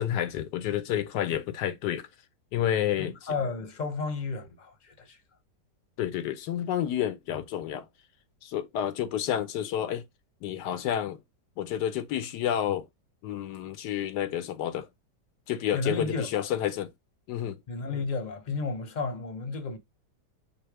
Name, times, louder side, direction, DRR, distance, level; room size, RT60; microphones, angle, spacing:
voice 1, 0.0-2.1 2.5-3.1 6.0-7.8 8.4-10.0 10.4-11.2 11.6-12.9 13.2-14.9 15.5-16.9 17.3-17.6, left 10 dB, 80° left, 1.2 m, -30 dB
voice 2, 3.0-5.2 15.7-16.5 17.7-19.8, left 4 dB, 35° left, 0.8 m, -32 dB
5.4 x 2.1 x 4.7 m
omnidirectional pair, 1.8 m